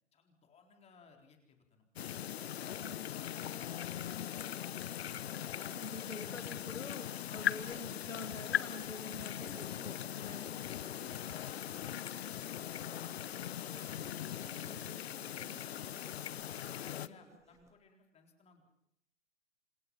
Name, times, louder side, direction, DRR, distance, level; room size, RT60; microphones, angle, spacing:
voice 1, 0.1-1.9 2.6-4.3 4.8-6.2 7.3-7.5 10.2-10.4 10.9-16.4 16.9-18.7, left 5 dB, 15° left, 3 dB, 4.1 m, -62 dB
sound 1, 2.0-17.1, left 11 dB, 55° left, 0.9 m, -40 dB
voice 2, 2.8-3.1 5.7-10.5 16.9-17.1, left 3 dB, 80° left, 8 dB, 1.8 m, -46 dB
sound 2, 7.5-17.7, right 3 dB, 10° right, 2.5 m, -59 dB
27.5 x 27.5 x 5.5 m, 0.72 s
figure-of-eight pair, 115°, 37 cm